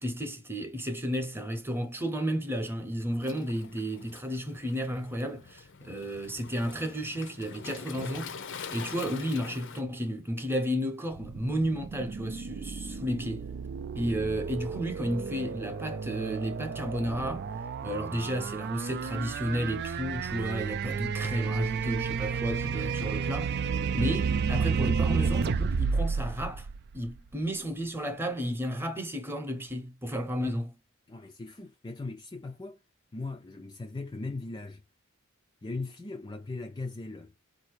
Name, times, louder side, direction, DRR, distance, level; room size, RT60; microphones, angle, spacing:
voice 1, 0.0-8.3 8.7-13.5 14.0-17.5 17.8-23.5 23.9-26.7 26.9-30.7, equal, 10° right, 0.8 m, -32 dB
Waves surf, 3.2-9.8, left 6 dB, 60° left, 0.6 m, -44 dB
sound 1, 11.1-27.3, right 5 dB, 50° right, 0.4 m, -32 dB
voice 2, 31.1-32.8 33.1-34.8 35.6-37.3, left 3 dB, 20° left, 0.4 m, -39 dB
4.2 x 2.7 x 4.7 m
head